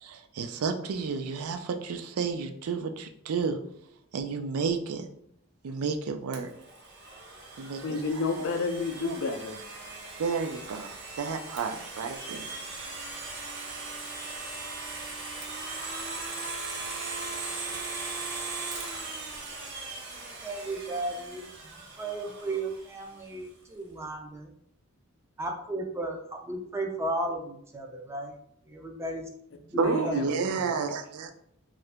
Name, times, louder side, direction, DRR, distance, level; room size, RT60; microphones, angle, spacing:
voice 1, 0.0-3.6 4.1-5.1 5.6-6.5 7.6-8.0 8.4-8.5 9.0-9.1 10.2-12.5 29.8-31.3, right 5 dB, 85° right, 7 dB, 0.4 m, -31 dB
Domestic sounds home sounds, 6.3-23.1, right 3 dB, 50° right, 0.7 m, -39 dB
voice 2, 7.8-9.6 29.7-30.4, left 3 dB, 55° left, 6 dB, 0.4 m, -30 dB
voice 3, 20.4-24.5 25.4-28.3 28.7-30.2, right 2 dB, 10° right, 1 dB, 0.4 m, -35 dB
2.7 x 2.4 x 3.3 m, 0.71 s
head